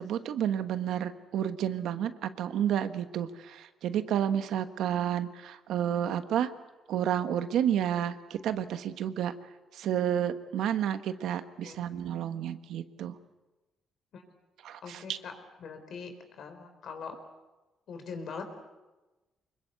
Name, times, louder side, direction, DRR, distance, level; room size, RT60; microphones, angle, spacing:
voice 1, 0.0-6.5 6.9-9.3 9.7-13.1 14.6-15.2, right 10 dB, 80° right, 10 dB, 1.3 m, -30 dB
voice 2, 14.8-15.3 15.6-17.2 17.9-18.5, left 5 dB, 65° left, 7 dB, 4.3 m, -42 dB
25.0 x 22.0 x 8.2 m, 1.1 s
cardioid pair, 90°, 0 cm